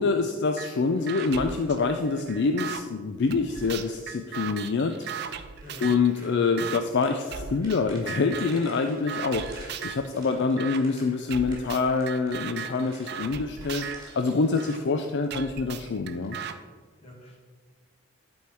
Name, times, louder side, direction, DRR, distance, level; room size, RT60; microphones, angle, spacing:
voice 1, 0.0-5.5 5.8-16.4, left 4 dB, 55° left, 6 dB, 0.4 m, -26 dB
sound 1, 0.6-0.7 1.1-2.8 3.3-6.1 6.6-6.8 7.3-7.8 8.1-8.7 9.1-10.1 10.6-10.8 11.3-14.8 15.3-16.5, right 7 dB, 55° right, 0.5 m, -37 dB
sound 2, 1.0-2.0 2.3-2.8 3.4-4.0 4.7-7.1 7.5-15.4 16.2-16.5, right 1 dB, 20° right, 2.2 m, -50 dB
voice 2, 17.0-17.4, equal, 30° left, -2 dB, 2.0 m, -46 dB
11.5 x 4.5 x 4.7 m, 1.5 s
head